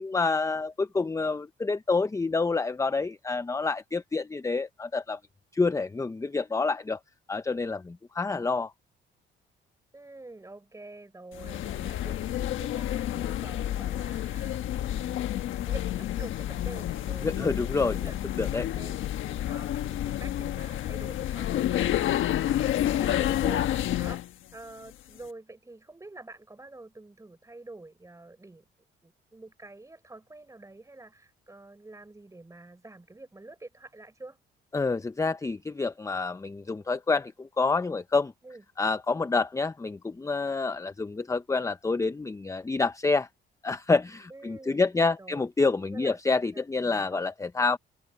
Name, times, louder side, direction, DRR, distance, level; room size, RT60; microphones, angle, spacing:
voice 1, 0.0-5.2 5.5-7.0 7.3-8.7 17.2-18.0 18.4-18.7 34.7-38.3 38.8-43.3 43.6-47.8, left 3 dB, 15° left, 0.6 m, -28 dB
voice 2, 9.9-15.2 15.6-24.2 24.5-28.7 29.0-34.4 38.4-38.6 44.3-44.9 45.2-46.2 46.5-47.2, right 2 dB, 15° right, 5.6 m, -47 dB
sound 1, 11.3-24.3, left 12 dB, 80° left, 1.3 m, -29 dB
open air
cardioid pair, 90°, 20 cm